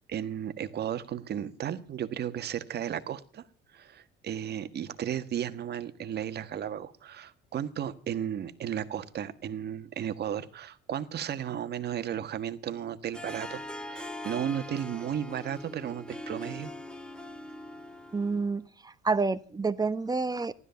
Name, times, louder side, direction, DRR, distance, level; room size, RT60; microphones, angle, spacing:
voice 1, 0.1-3.4 3.7-13.6 13.9-16.7, right 9 dB, 55° right, 11 dB, 1.5 m, -34 dB
Harp, 13.1-18.6, left 1 dB, 5° left, 1.9 m, -42 dB
voice 2, 18.1-20.5, right 4 dB, 20° right, 14 dB, 1.1 m, -29 dB
15.5 x 12.5 x 6.9 m, 0.42 s
cardioid pair, 105°, 21 cm